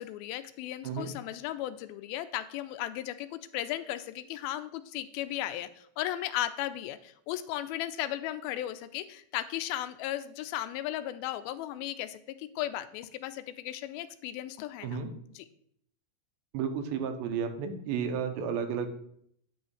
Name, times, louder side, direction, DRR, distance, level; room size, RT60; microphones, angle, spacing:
voice 1, 0.0-15.0 15.4-15.5, left 13 dB, 85° left, 10 dB, 2.3 m, -36 dB
voice 2, 16.5-18.9, right 7 dB, 85° right, 6 dB, 2.7 m, -32 dB
9.4 x 3.2 x 6.2 m, 0.67 s
omnidirectional pair, 4.3 m